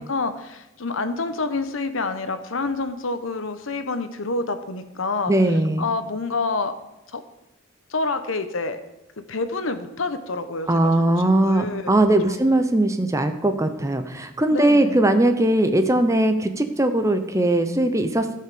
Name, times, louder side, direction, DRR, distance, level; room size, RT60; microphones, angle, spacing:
voice 1, 0.0-5.3 5.8-6.7 7.1-7.2 7.9-8.8 9.3-10.9 11.4-11.8 12.2-12.4 14.5-15.0, left 3 dB, 75° left, 10 dB, 1.0 m, -27 dB
voice 2, 5.3-5.9 10.7-18.3, right 1 dB, 15° right, 8 dB, 0.7 m, -20 dB
14.5 x 5.7 x 6.8 m, 0.92 s
head